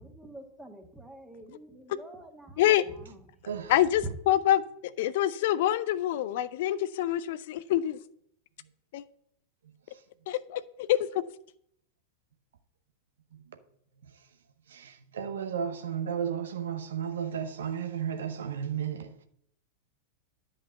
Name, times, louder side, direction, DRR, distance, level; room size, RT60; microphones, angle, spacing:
voice 1, 0.0-2.6, right 1 dB, 5° right, 1.6 m, -48 dB
voice 2, 3.7-8.0 8.9-9.0 10.3-11.2, left 12 dB, 55° left, 0.4 m, -26 dB
voice 3, 14.7-19.3, right 8 dB, 65° right, 0.8 m, -33 dB
10.5 x 5.5 x 6.5 m
figure-of-eight pair, 90°, 0 cm